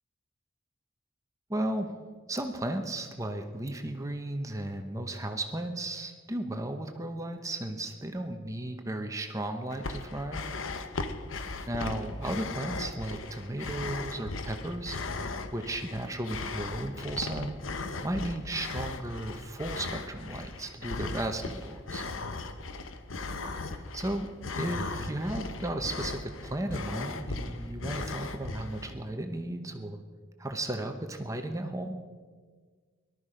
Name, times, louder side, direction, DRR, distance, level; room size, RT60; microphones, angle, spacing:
voice 1, 1.5-1.9 2.3-10.4 11.7-15.0 15.2-17.6 18.0-22.0 23.4-24.3 24.6-30.0 30.4-31.9, right 1 dB, 15° right, 5 dB, 0.9 m, -35 dB
sound 1, 9.7-29.0, left 3 dB, 80° left, 0.9 m, -37 dB
18.5 x 12.5 x 5.1 m, 1.5 s
head